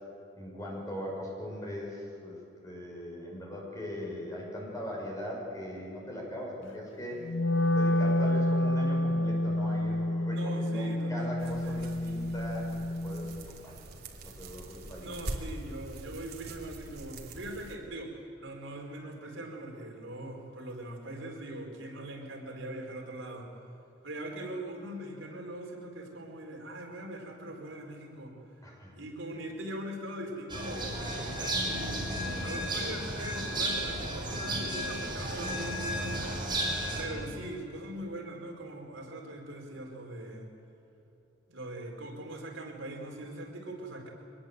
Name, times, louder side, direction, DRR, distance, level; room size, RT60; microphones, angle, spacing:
voice 1, 0.4-2.4 2.6-7.2 7.7-12.7 13.0-13.7 14.2-15.2 28.6-28.9 36.9-37.3, equal, 15° left, -2 dB, 6.5 m, -40 dB
Wind instrument woodwind instrument, 7.2-13.4, left 1 dB, 65° left, 0.6 m, -29 dB
voice 2, 10.3-11.8 15.0-23.5 24.0-28.4 28.9-32.1 32.4-36.1 37.0-40.5 41.5-44.1, right 1 dB, 70° right, 0 dB, 4.5 m, -41 dB
sound 1, 11.4-17.8, right 1 dB, 55° right, 2.6 m, -43 dB
sound 2, 30.5-37.0, right 1 dB, 25° right, 5.2 m, -33 dB
24.0 x 21.0 x 8.0 m, 3.0 s
head